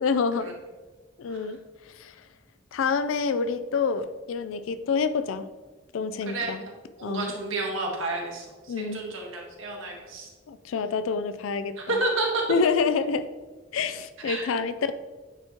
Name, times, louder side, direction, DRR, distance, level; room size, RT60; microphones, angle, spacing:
voice 1, 0.0-0.5 1.2-1.6 2.0-2.1 2.7-5.5 5.9-6.6 7.0-7.3 8.7-9.0 10.5-12.0 12.5-13.3 13.7-14.9, left 5 dB, 85° left, 11 dB, 0.4 m, -27 dB
voice 2, 6.2-6.7 7.0-10.3 11.8-12.4 14.2-14.4, right 2 dB, 85° right, 0 dB, 1.5 m, -31 dB
9.0 x 4.3 x 2.9 m, 1.3 s
head